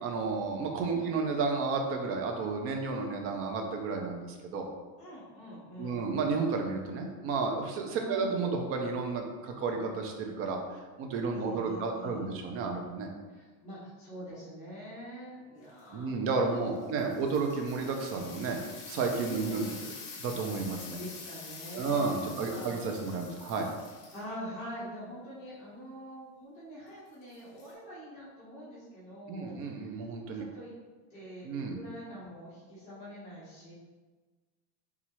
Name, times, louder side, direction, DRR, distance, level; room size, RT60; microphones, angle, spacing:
voice 1, 0.0-4.7 5.8-10.6 11.0-13.1 15.9-18.6 18.9-19.6 20.2-21.0 21.7-23.7 29.3-30.4 31.4-31.8, right 4 dB, 30° right, 2 dB, 0.4 m, -32 dB
voice 2, 5.0-6.2 7.9-8.4 11.3-12.4 13.3-17.4 19.2-19.8 20.9-23.1 24.1-30.7 31.1-33.7, equal, 15° left, -11 dB, 1.3 m, -45 dB
sound 1, 15.6-15.8 16.6-24.2 27.3-27.7, left 4 dB, 60° left, 0.9 m, -46 dB
4.1 x 2.4 x 3.0 m, 1.3 s
supercardioid pair, 140°, 45 cm